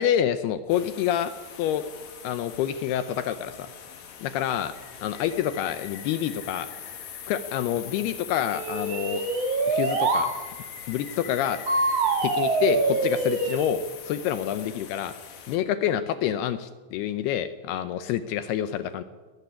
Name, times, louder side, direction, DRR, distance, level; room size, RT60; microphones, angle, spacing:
voice 1, 0.0-1.3 1.6-1.8 2.2-3.7 4.2-4.7 5.0-6.7 7.3-9.2 9.7-10.3 10.9-11.6 12.2-15.1 15.5-19.0, left 10 dB, 80° left, 12 dB, 2.4 m, -27 dB
sound 1, 0.7-15.6, left 8 dB, 55° left, 2.4 m, -42 dB
sound 2, 8.5-10.3 11.7-13.7, right 3 dB, 45° right, 2.6 m, -25 dB
19.0 x 14.0 x 9.8 m, 1.4 s
omnidirectional pair, 5.1 m